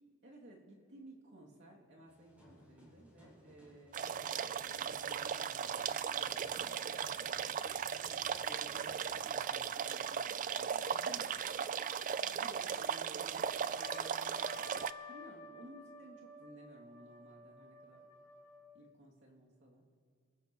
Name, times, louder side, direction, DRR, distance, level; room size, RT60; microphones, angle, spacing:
voice 1, 0.2-4.0 4.6-7.0 7.4-11.7 12.4-14.6 15.1-18.1 18.7-19.9, right 1 dB, 60° right, -3 dB, 2.6 m, -57 dB
sound 1, 2.1-9.6, equal, 10° right, 4.6 m, -61 dB
sound 2, 3.9-14.9, right 7 dB, 40° right, 0.4 m, -37 dB
Trumpet, 13.8-18.8, left 3 dB, 30° left, 1.7 m, -53 dB
27.0 x 15.0 x 3.0 m, 2.1 s
head